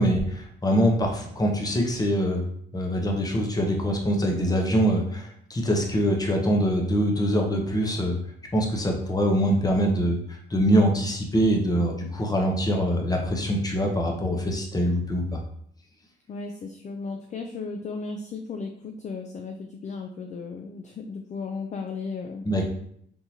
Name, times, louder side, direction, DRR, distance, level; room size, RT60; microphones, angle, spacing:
voice 1, 0.0-2.5 2.7-8.2 8.5-10.2 10.5-15.4 22.5-22.7, equal, 20° left, 1 dB, 0.8 m, -24 dB
voice 2, 16.3-22.5, left 4 dB, 35° left, 5 dB, 0.4 m, -35 dB
3.5 x 2.9 x 2.7 m, 0.67 s
cardioid pair, 90°, 20 cm